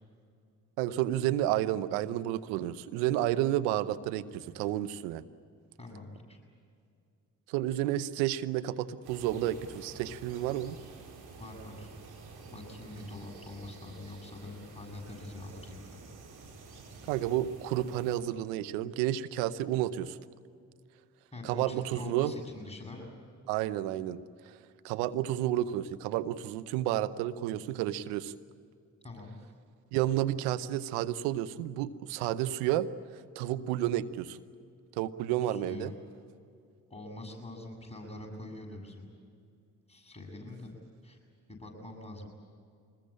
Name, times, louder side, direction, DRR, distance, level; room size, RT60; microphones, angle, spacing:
voice 1, 0.8-5.2 7.5-10.8 17.1-20.2 21.4-22.3 23.5-24.6 24.8-28.3 29.9-32.9 33.3-34.4 35.0-35.9, right 13 dB, 90° right, 13 dB, 0.9 m, -31 dB
voice 2, 5.8-6.4 11.4-11.9 12.4-16.0 21.3-23.1 29.0-29.3 35.4-35.9 36.9-39.1 39.9-40.7 41.0-41.2 41.5-42.3, left 2 dB, 15° left, 1 dB, 7.5 m, -44 dB
sound 1, 9.0-18.2, right 3 dB, 65° right, 4.5 m, -50 dB
25.5 x 21.0 x 8.7 m, 2.3 s
hypercardioid pair, 45°, 40 cm